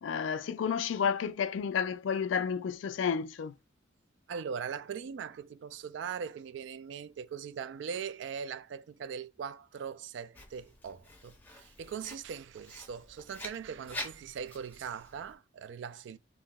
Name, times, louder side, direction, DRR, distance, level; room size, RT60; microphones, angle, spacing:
voice 1, 0.0-3.5, left 7 dB, 80° left, 0.3 m, -31 dB
voice 2, 4.3-16.2, right 7 dB, 70° right, 0.3 m, -40 dB
Writing, 10.3-15.3, left 1 dB, 10° left, 0.6 m, -46 dB
5.4 x 2.7 x 2.2 m
head